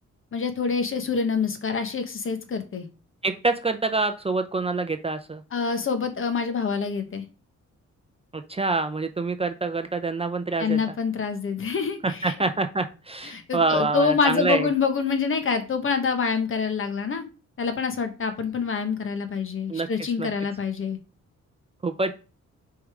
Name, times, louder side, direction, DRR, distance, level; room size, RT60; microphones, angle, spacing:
voice 1, 0.3-2.9 5.5-7.2 10.6-12.3 13.2-17.2 17.6-21.0, left 5 dB, 45° left, 8 dB, 1.2 m, -26 dB
voice 2, 3.2-5.4 8.3-10.8 12.0-14.7 19.7-19.9 20.2-20.3 21.8-22.1, right 3 dB, 20° right, 8 dB, 0.6 m, -26 dB
6.1 x 3.8 x 4.9 m, 0.32 s
cardioid pair, 115°, 29 cm